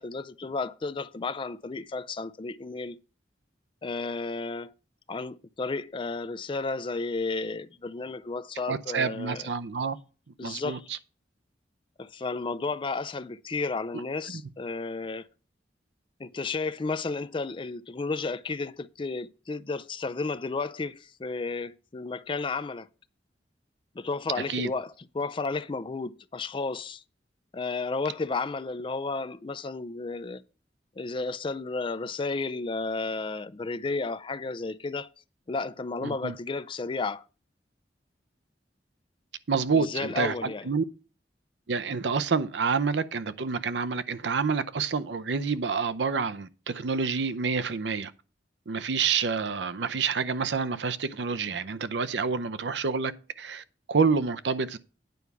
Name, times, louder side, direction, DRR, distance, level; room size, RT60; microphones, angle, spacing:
voice 1, 0.0-3.0 3.8-4.7 5.1-9.5 10.4-11.0 12.0-15.3 16.2-22.9 23.9-27.0 27.5-30.4 31.0-35.1 35.5-37.2 39.7-40.7, left 3 dB, 30° left, 0.4 m, -33 dB
voice 2, 8.7-10.0 10.4-10.8 14.3-14.4 24.5-24.7 36.0-36.3 39.5-40.8 41.7-48.1 48.7-53.1 53.4-54.8, right 5 dB, 80° right, 0.6 m, -28 dB
9.3 x 4.7 x 6.8 m
head